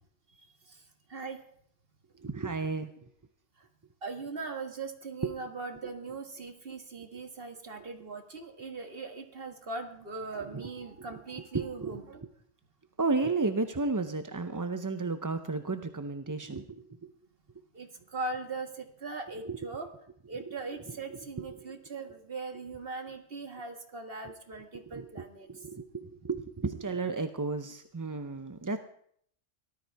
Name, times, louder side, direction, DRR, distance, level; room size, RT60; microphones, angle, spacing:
voice 1, 2.2-2.9 5.2-5.3 10.4-10.6 11.0-11.1 11.5-12.3 13.0-17.1 19.4-19.6 20.4-20.5 20.9-21.7 24.2-24.3 24.7-28.8, right 3 dB, 25° right, 8 dB, 0.4 m, -33 dB
voice 2, 4.0-12.2 17.7-19.9 20.3-25.5, right 3 dB, 50° right, 4 dB, 1.8 m, -40 dB
18.0 x 13.0 x 4.6 m, 0.66 s
omnidirectional pair, 1.3 m